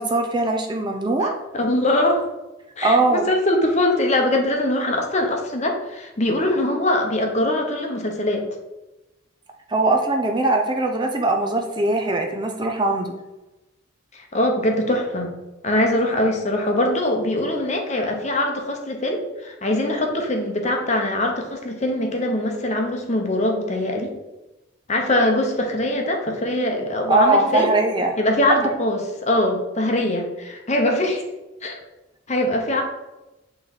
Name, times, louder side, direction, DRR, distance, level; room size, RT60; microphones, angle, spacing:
voice 1, 0.0-1.3 2.8-3.3 9.7-13.2 27.1-28.1 28.6-28.7, right 2 dB, 20° right, 3 dB, 0.5 m, -21 dB
voice 2, 1.2-2.2 2.8-8.4 14.1-15.3 15.6-24.1 24.9-27.7 28.2-31.2 31.6-31.8 32.3-32.8, left 1 dB, 35° left, 3 dB, 0.9 m, -22 dB
8.2 x 3.3 x 4.1 m, 1.0 s
head